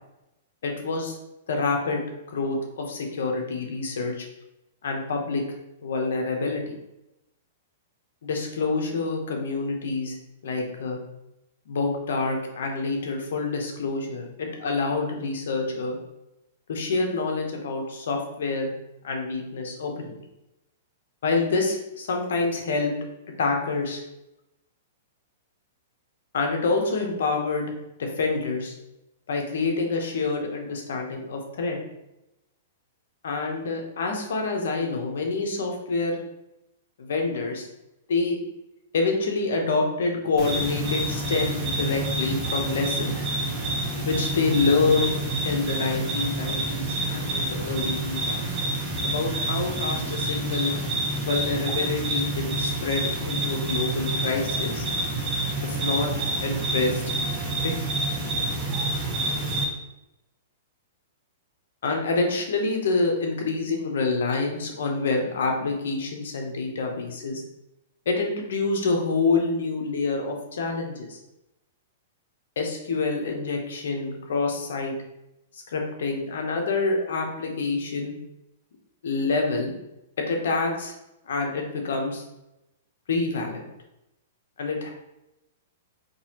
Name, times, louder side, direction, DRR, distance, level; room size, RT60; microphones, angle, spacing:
voice 1, 0.6-1.1 1.5-4.3 4.8-5.4 5.8-6.7 8.2-10.2 10.4-11.0 11.7-16.0 16.7-18.7 19.0-20.2 21.2-23.0 23.4-24.0 26.3-27.7 28.0-28.7 29.3-31.8 33.2-36.2 37.0-37.7 38.1-38.4 38.9-43.2 44.0-45.2 45.4-48.4 49.0-50.7 51.3-54.8 55.6-56.1 56.4-57.0 57.6-57.7 61.8-67.4 68.1-71.2 72.6-74.9 75.5-78.1 79.0-79.7 80.2-81.0 81.2-82.2 83.1-83.6 84.6-84.9, left 3 dB, 75° left, 2 dB, 0.9 m, -27 dB
sound 1, 40.4-59.6, right 2 dB, 20° right, 0.8 m, -28 dB
4.0 x 2.8 x 2.9 m, 0.91 s
hypercardioid pair, 150°, 0 cm